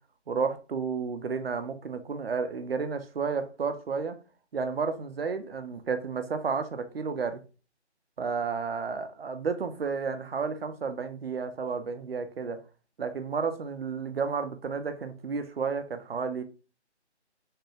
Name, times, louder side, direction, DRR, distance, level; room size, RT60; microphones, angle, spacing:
voice 1, 0.3-4.2 4.5-7.4 8.2-12.6 13.0-16.4, right 5 dB, 60° right, 0.5 m, -32 dB
3.2 x 2.2 x 2.9 m
figure-of-eight pair, 150°, 34 cm